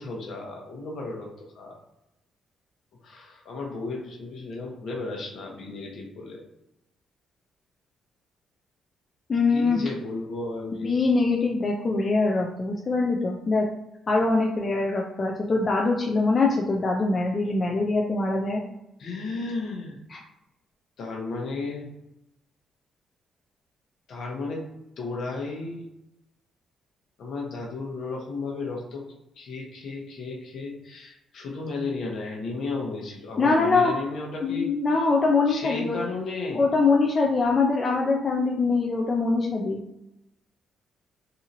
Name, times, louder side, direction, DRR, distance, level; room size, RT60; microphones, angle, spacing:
voice 1, 0.0-1.8 3.0-6.4 9.5-10.9 19.0-20.0 21.0-21.9 24.1-24.7 25.0-25.9 27.2-29.0 29.4-34.7 35.5-36.6, left 3 dB, 65° left, -2 dB, 0.9 m, -34 dB
voice 2, 9.3-9.8 10.8-13.7 14.1-18.6 20.1-20.2 33.4-33.9 34.4-36.0 36.5-39.8, left 3 dB, 35° left, 0 dB, 0.4 m, -23 dB
2.8 x 2.7 x 2.6 m, 0.88 s
cardioid pair, 90°, 0 cm